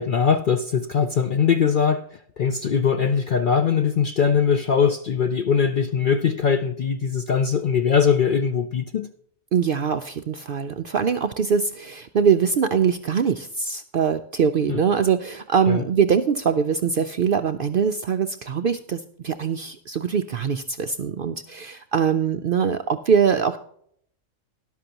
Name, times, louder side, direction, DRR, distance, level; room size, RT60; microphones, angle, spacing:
voice 1, 0.0-2.0 2.4-9.1 14.7-14.8 15.7-15.8, left 6 dB, 60° left, 0.5 m, -21 dB
voice 2, 9.5-23.6, right 7 dB, 60° right, 0.5 m, -22 dB
13.0 x 11.0 x 2.9 m
omnidirectional pair, 1.4 m